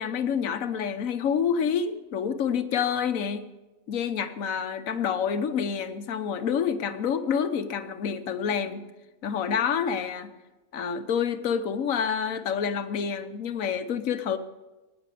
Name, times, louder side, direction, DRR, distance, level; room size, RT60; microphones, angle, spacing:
voice 1, 0.0-3.5 3.9-8.9 9.2-10.3 10.7-14.4, left 7 dB, 65° left, 10 dB, 1.4 m, -28 dB
18.0 x 9.4 x 8.4 m, 1.1 s
omnidirectional pair, 1.5 m